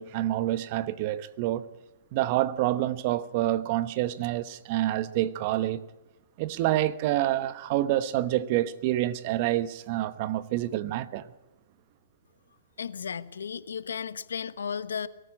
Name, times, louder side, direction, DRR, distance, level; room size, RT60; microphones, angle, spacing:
voice 1, 0.0-1.7 2.1-5.8 6.4-11.2, right 14 dB, 45° right, 1.1 m, -27 dB
voice 2, 12.8-15.1, left 7 dB, 85° left, 1.1 m, -34 dB
23.0 x 14.0 x 8.7 m
hypercardioid pair, 130°, 0 cm